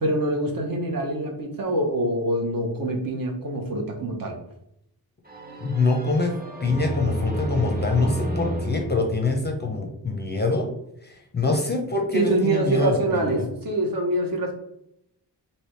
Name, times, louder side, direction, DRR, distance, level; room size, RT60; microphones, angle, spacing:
voice 1, 0.0-4.4 12.1-14.5, right 1 dB, 55° right, 1 dB, 0.9 m, -25 dB
sound 1, 5.3-10.0, right 1 dB, 20° right, 0.6 m, -31 dB
voice 2, 5.6-6.3 6.6-10.7 11.0-13.4, left 3 dB, 25° left, 2 dB, 0.5 m, -24 dB
3.3 x 2.8 x 4.3 m, 0.79 s
wide cardioid pair, 170°, 42 cm